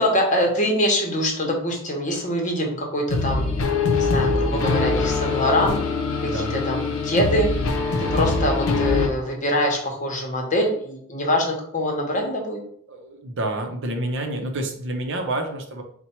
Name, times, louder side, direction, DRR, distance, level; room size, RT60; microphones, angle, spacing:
voice 1, 0.0-3.5 3.9-5.8 6.2-7.5 8.0-12.6, equal, 35° left, 1 dB, 0.9 m, -24 dB
sound 1, 3.1-9.1, left 3 dB, 75° left, 0.6 m, -23 dB
voice 2, 6.2-6.6 12.9-15.8, right 1 dB, 60° right, 4 dB, 0.6 m, -28 dB
4.3 x 2.2 x 4.3 m, 0.65 s
head